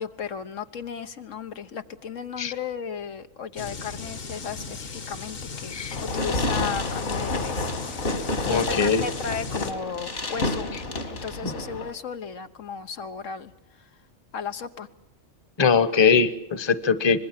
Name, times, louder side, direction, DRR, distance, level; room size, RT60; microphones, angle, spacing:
voice 1, 0.0-7.9 8.5-10.7 11.1-13.5 13.8-13.9 14.3-14.9, left 6 dB, 85° left, 8 dB, 1.5 m, -35 dB
sound 1, 3.6-9.7, left 4 dB, 50° left, 1.3 m, -37 dB
Fireworks, 5.9-11.9, left 2 dB, 65° left, 2.8 m, -29 dB
voice 2, 8.4-9.0 15.6-17.2, left 5 dB, 25° left, 14 dB, 0.9 m, -21 dB
25.0 x 21.0 x 7.4 m, 0.82 s
omnidirectional pair, 1.3 m